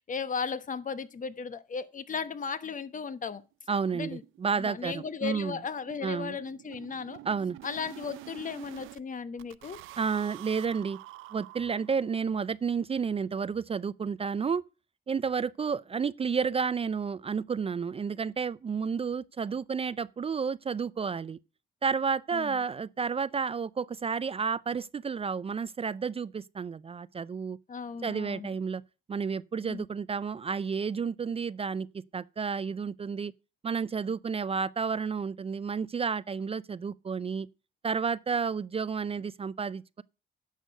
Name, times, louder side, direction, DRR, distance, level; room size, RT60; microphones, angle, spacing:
voice 1, 0.0-3.4 3.9-4.2 4.6-7.2 7.6-9.8 22.3-22.6 27.7-28.5 29.7-29.9, left 6 dB, 40° left, 1.1 m, -36 dB
sound 1, 2.1-2.2 2.6-2.7 3.0-3.1 3.4-3.5 3.8-9.0 9.4-12.2, right 17 dB, 90° right, 0.5 m, -48 dB
voice 2, 3.7-5.6 6.0-6.4 7.3-7.6 10.0-11.0 11.3-14.6 15.1-21.4 21.8-27.6 28.0-28.8 29.1-31.9 32.1-33.3 33.6-37.5 37.8-40.0, right 6 dB, 30° right, 0.4 m, -31 dB
10.0 x 6.5 x 6.5 m
cardioid pair, 90°, 20 cm